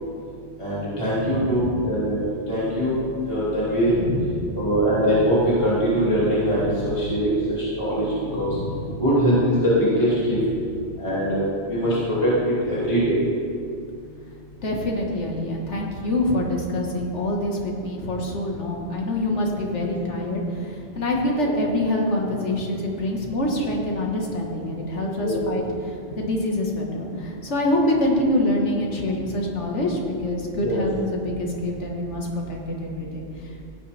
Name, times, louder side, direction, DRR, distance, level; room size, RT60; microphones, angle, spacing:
voice 1, 0.6-2.2 2.5-2.9 3.3-3.9 4.6-8.1 8.4-8.5 9.0-9.7 10.0-10.4 11.0-11.4 11.7-13.2 21.4-21.5 25.2-25.4 30.6-30.8, equal, 25° left, -9 dB, 2.6 m, -22 dB
voice 2, 1.2-1.7 3.9-4.7 6.6-7.1 8.3-9.0 10.3-10.5 12.8-12.9 14.6-33.5, left 1 dB, 85° left, -1 dB, 1.9 m, -26 dB
16.0 x 9.8 x 3.5 m, 2.4 s
omnidirectional pair, 1.2 m